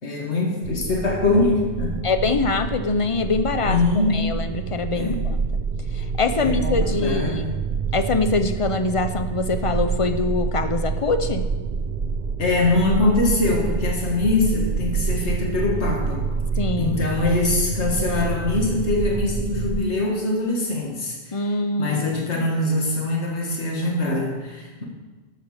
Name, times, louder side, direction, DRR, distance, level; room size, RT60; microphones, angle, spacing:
voice 1, 0.0-2.1 3.6-4.4 4.9-5.3 6.3-7.5 12.4-16.3 16.8-21.4 21.8-24.8, left 2 dB, 75° left, -1 dB, 2.0 m, -23 dB
sound 1, 0.6-19.8, right 5 dB, 55° right, 0.6 m, -27 dB
voice 2, 2.0-3.8 4.1-5.4 5.9-7.4 7.9-11.4 16.6-17.0 21.3-22.0, left 3 dB, 40° left, 9 dB, 0.5 m, -24 dB
12.5 x 7.2 x 4.8 m, 1.2 s
omnidirectional pair, 1.2 m